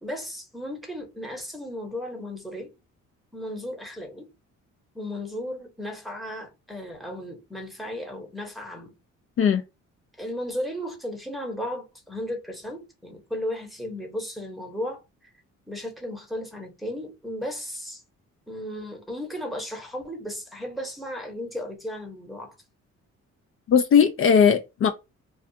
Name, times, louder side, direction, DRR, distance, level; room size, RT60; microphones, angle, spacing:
voice 1, 0.0-2.7 3.3-4.3 4.9-8.9 10.2-15.0 15.7-18.0 18.5-22.6, left 1 dB, ahead, 0.9 m, -35 dB
voice 2, 23.7-24.9, left 7 dB, 45° left, 0.4 m, -18 dB
2.3 x 2.3 x 2.7 m
cardioid pair, 90°, 30 cm